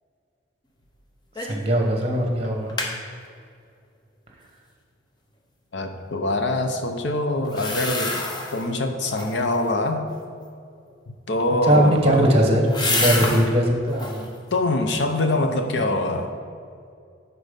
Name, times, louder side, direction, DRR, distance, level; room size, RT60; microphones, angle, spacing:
sound 1, 1.4-1.7 2.0-2.1 2.4-2.9 7.4-8.7 9.0-9.6 11.5-13.5 13.9-14.3 14.8-15.4 15.8-15.9, left 2 dB, 25° left, 0.9 m, -28 dB
voice 1, 1.4-2.7 11.6-14.2, right 1 dB, 30° right, 2 dB, 1.2 m, -20 dB
voice 2, 5.7-8.2 8.5-10.1 11.3-12.2 14.5-16.3, left 2 dB, 65° left, 5 dB, 0.7 m, -24 dB
10.5 x 4.3 x 5.2 m, 2.4 s
head